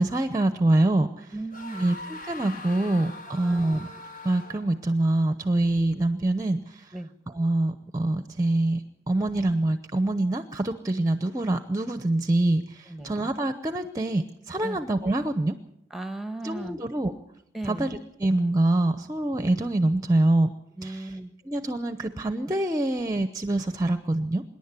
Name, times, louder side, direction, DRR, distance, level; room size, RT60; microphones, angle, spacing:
voice 1, 0.0-1.3 1.8-3.9 4.2-6.9 7.3-15.6 16.4-17.1 17.6-20.5 20.8-21.2 21.4-24.4, right 2 dB, 20° right, 10 dB, 0.8 m, -25 dB
voice 2, 1.3-2.0 3.4-3.9 6.9-7.1 12.9-13.1 14.6-14.8 15.9-16.8 17.5-17.9 20.8-21.3, right 2 dB, ahead, 9 dB, 1.3 m, -36 dB
sound 1, 1.5-4.9, left 2 dB, 45° left, 2.0 m, -42 dB
26.0 x 11.0 x 9.7 m, 0.79 s
head